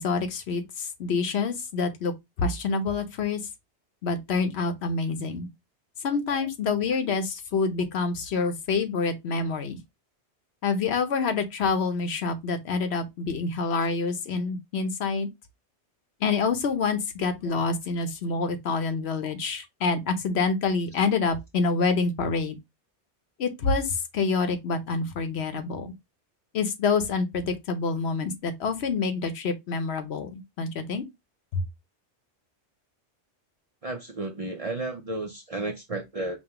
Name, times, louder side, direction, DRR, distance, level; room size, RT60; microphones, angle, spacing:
voice 1, 0.0-2.1 2.4-3.4 4.0-5.5 6.0-9.8 10.6-15.3 16.2-22.6 23.4-25.9 26.5-31.0 31.5-31.6, left 4 dB, 70° left, 1.0 m, -27 dB
voice 2, 33.8-36.4, right 2 dB, 45° right, 0.5 m, -33 dB
5.4 x 2.2 x 2.9 m
omnidirectional pair, 1.1 m